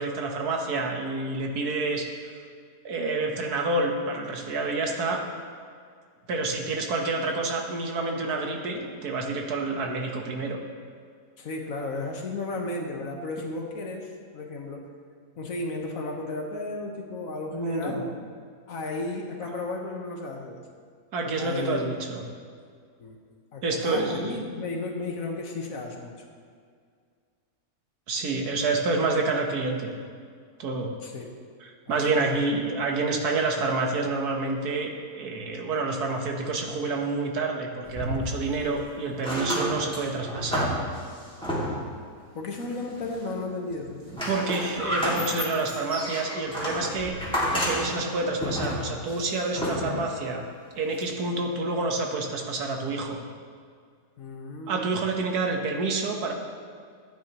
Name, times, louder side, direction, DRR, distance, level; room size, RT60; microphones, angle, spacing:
voice 1, 0.0-2.1 2.8-5.2 6.3-10.6 17.5-18.1 21.1-22.2 23.6-24.4 28.1-29.9 30.6-30.9 31.6-34.9 35.2-40.7 44.3-47.2 47.5-50.4 50.8-53.2 54.7-56.3, right 3 dB, 80° right, 2 dB, 1.6 m, -28 dB
voice 2, 11.4-14.9 15.4-18.0 18.7-20.6 21.3-22.0 23.0-23.2 23.5-26.2 31.0-31.3 31.9-32.5 42.3-44.0 47.3-47.5 54.2-54.8, left 2 dB, 60° left, 1 dB, 1.5 m, -34 dB
sound 1, 37.9-38.8 39.1-42.0 42.6-43.3 43.7-50.2 51.0-51.1, equal, 5° left, 2.1 m, -31 dB
14.0 x 9.1 x 3.0 m, 2.1 s
omnidirectional pair, 1.6 m